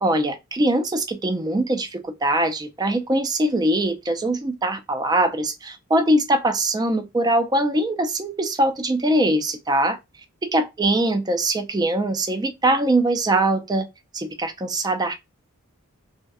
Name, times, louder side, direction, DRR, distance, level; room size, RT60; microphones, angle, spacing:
voice 1, 0.0-10.0 10.4-13.9 14.1-15.1, right 1 dB, 20° right, 0.4 m, -22 dB
2.6 x 2.1 x 2.3 m
head